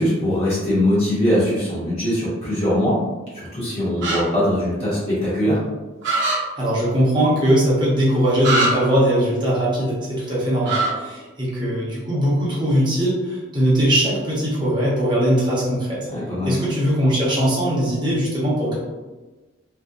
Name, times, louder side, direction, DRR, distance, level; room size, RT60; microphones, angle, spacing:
voice 1, 0.0-3.0 3.3-5.6 16.1-16.5, left 1 dB, 30° left, -9 dB, 0.8 m, -21 dB
sound 1, 4.0-4.2 6.0-6.4 8.4-8.7 10.6-10.9, right 2 dB, 60° right, 0.7 m, -20 dB
voice 2, 6.6-16.1 16.4-18.7, equal, 25° right, -7 dB, 0.7 m, -20 dB
2.6 x 2.0 x 2.3 m, 1.2 s
head